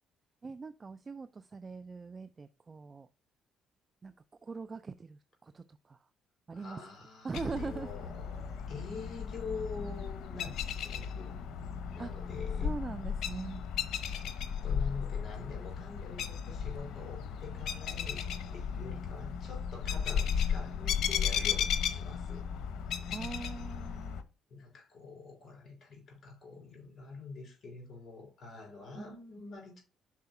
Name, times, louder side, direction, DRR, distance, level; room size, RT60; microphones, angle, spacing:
voice 1, 0.4-3.1 4.0-4.1 4.4-6.0 6.5-6.8 7.2-7.9 12.0-12.1 12.6-13.7 23.1-24.2 28.9-29.2, right 4 dB, 30° right, 0.4 m, -41 dB
voice 2, 6.5-11.3 11.9-12.7 14.0-14.2 14.6-18.2 18.5-22.4 24.5-29.8, left 4 dB, 50° left, 4.4 m, -45 dB
sound 1, 7.3-24.2, left 7 dB, 75° left, 0.8 m, -35 dB
5.8 x 4.7 x 5.3 m
cardioid pair, 95°, 0 cm